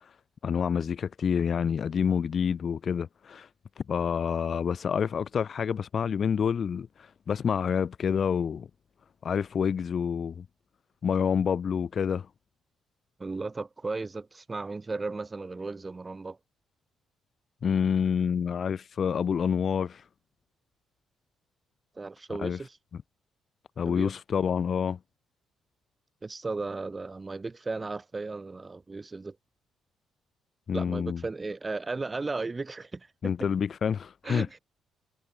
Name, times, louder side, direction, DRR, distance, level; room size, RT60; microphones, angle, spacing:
voice 1, 0.4-3.5 3.9-8.7 9.2-10.5 11.0-12.3 17.6-20.0 22.4-22.6 23.8-25.0 30.7-31.2 33.2-34.6, left 7 dB, 50° left, 0.4 m, -28 dB
voice 2, 13.2-16.4 22.0-22.8 23.8-24.1 26.2-29.4 30.7-33.3 34.2-34.6, right 3 dB, 25° right, 3.8 m, -35 dB
cardioid pair, 90°, 0 cm